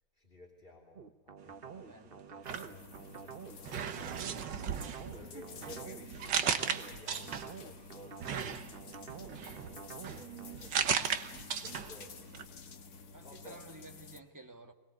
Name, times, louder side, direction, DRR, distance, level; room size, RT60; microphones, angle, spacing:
voice 1, 0.1-4.5 5.1-8.6 8.9-10.8 11.6-12.3 12.6-13.6, left 1 dB, 30° left, 3.3 m, -56 dB
sound 1, 1.0-10.6, right 6 dB, 45° right, 0.8 m, -48 dB
voice 2, 1.9-2.3 5.2-5.5 13.1-14.7, right 2 dB, 10° right, 1.5 m, -52 dB
sound 2, 2.3-3.3 3.6-7.7 8.2-12.1 12.3-12.5, right 7 dB, 75° right, 1.8 m, -36 dB
sound 3, 2.4-14.2, left 5 dB, 60° left, 1.8 m, -51 dB
21.5 x 21.0 x 8.2 m
omnidirectional pair, 2.0 m